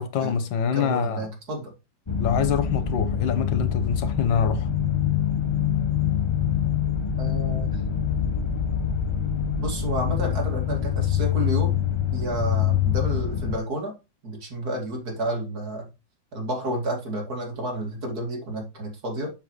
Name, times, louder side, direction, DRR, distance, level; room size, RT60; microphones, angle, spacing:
voice 1, 0.0-1.3 2.2-4.7, left 7 dB, 85° left, 1.7 m, -25 dB
voice 2, 0.7-1.7 7.2-7.8 9.6-11.7 12.1-13.9 14.2-15.9 16.3-19.3, right 1 dB, 55° right, 3.0 m, -30 dB
sound 1, 2.1-13.6, left 9 dB, 50° left, 0.3 m, -25 dB
7.4 x 7.2 x 3.2 m
omnidirectional pair, 2.0 m